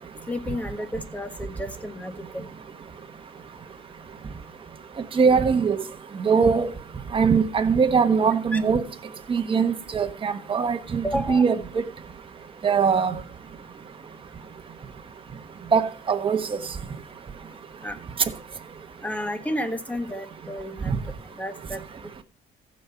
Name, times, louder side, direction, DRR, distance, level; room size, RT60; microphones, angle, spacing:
voice 1, 0.3-2.5 8.5-8.6 11.0-11.5 17.8-18.0 19.0-21.0 21.4-21.8, left 1 dB, 10° left, 1.5 m, -31 dB
voice 2, 5.1-5.8 6.2-6.7 7.1-8.8 9.3-11.6 12.6-13.1 15.7-16.5 20.9-21.0, right 5 dB, 30° right, 1.2 m, -21 dB
15.0 x 5.4 x 5.7 m
cardioid pair, 110°, 17 cm